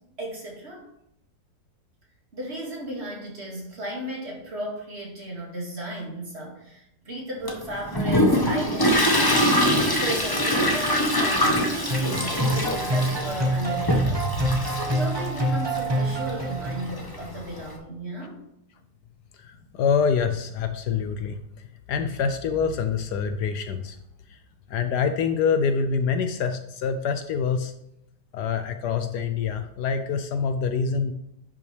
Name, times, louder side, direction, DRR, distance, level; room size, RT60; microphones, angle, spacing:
voice 1, 0.2-0.9 2.3-9.6 10.0-14.3 14.7-18.4, right 1 dB, 35° right, -2 dB, 2.4 m, -35 dB
Toilet flush, 7.5-17.7, equal, 15° left, 0.9 m, -24 dB
sound 1, 11.9-17.1, right 1 dB, 20° right, 0.8 m, -26 dB
voice 2, 19.7-21.4 21.9-24.0 24.7-27.7 28.3-31.1, left 6 dB, 70° left, 8 dB, 1.1 m, -25 dB
10.5 x 6.0 x 3.3 m, 0.81 s
omnidirectional pair, 1.9 m